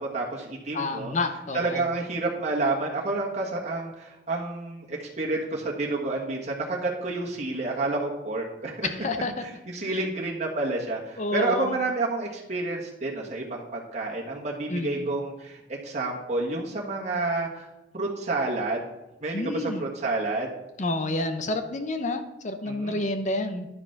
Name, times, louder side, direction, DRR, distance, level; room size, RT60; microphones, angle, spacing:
voice 1, 0.1-1.1 1.5-8.9 9.4-17.6 17.9-18.9 19.2-20.5 22.6-23.1, right 2 dB, 40° right, -3 dB, 1.6 m, -29 dB
voice 2, 0.7-1.8 8.8-9.4 9.8-10.0 11.2-11.8 14.7-15.0 19.3-19.8 20.8-23.7, left 2 dB, 45° left, 8 dB, 0.8 m, -29 dB
10.5 x 6.0 x 5.8 m, 0.97 s
head